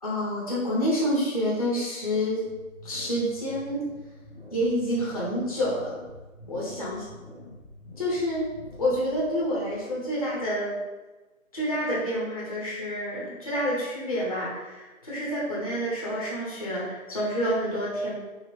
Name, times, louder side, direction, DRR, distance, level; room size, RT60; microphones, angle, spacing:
voice 1, 0.0-2.4 2.8-3.8 4.5-5.9 6.5-7.0 8.0-8.5 8.8-10.8 11.5-18.2, equal, 25° left, -6 dB, 0.5 m, -28 dB
sound 1, 2.4-10.6, left 1 dB, 50° right, 1.1 m, -47 dB
3.0 x 2.5 x 2.4 m, 1.2 s
figure-of-eight pair, 155°, 42 cm